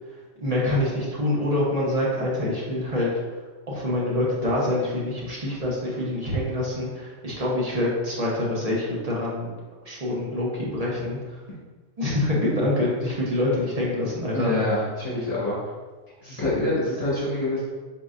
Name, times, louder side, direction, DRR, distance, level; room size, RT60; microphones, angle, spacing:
voice 1, 0.4-3.4 3.7-9.5 9.8-11.4 12.0-14.5, left 1 dB, 30° right, -5 dB, 0.9 m, -26 dB
voice 2, 14.3-15.6 16.2-17.6, left 1 dB, 30° left, -9 dB, 1.6 m, -26 dB
4.5 x 3.8 x 2.5 m, 1.3 s
omnidirectional pair, 1.4 m